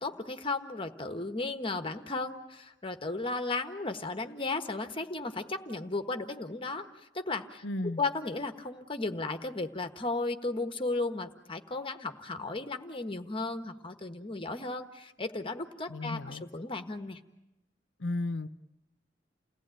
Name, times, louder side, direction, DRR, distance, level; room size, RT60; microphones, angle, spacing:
voice 1, 0.0-7.6 8.0-17.2, left 3 dB, 30° left, 7 dB, 1.3 m, -35 dB
voice 2, 7.6-8.0 15.9-16.5 18.0-18.5, left 2 dB, 80° left, 12 dB, 1.0 m, -34 dB
29.5 x 18.0 x 9.0 m, 0.95 s
head